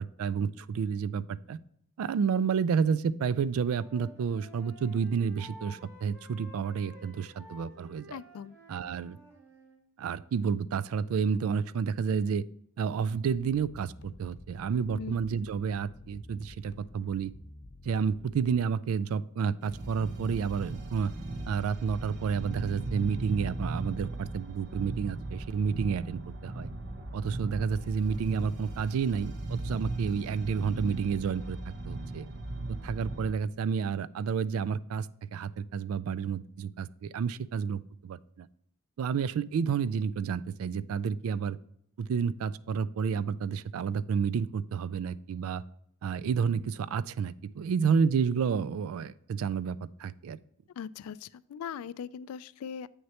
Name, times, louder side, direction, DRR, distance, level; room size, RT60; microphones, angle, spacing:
voice 1, 0.0-1.6 2.0-8.2 8.7-9.2 10.0-12.4 12.8-17.3 17.8-21.1 21.5-26.7 27.1-31.6 31.9-32.3 32.7-38.5 39.0-41.6 42.0-45.6 46.0-50.4, right 6 dB, 75° right, 17 dB, 0.3 m, -30 dB
Wind instrument woodwind instrument, 3.3-9.8, equal, 10° right, 2.7 m, -53 dB
voice 2, 8.1-8.6 14.9-15.1 50.7-52.9, left 7 dB, 85° left, 17 dB, 0.3 m, -40 dB
sound 1, 13.3-18.6, left 2 dB, 50° left, 0.7 m, -51 dB
sound 2, 19.6-33.3, right 2 dB, 55° right, 0.7 m, -38 dB
8.0 x 6.3 x 2.9 m, 0.70 s
head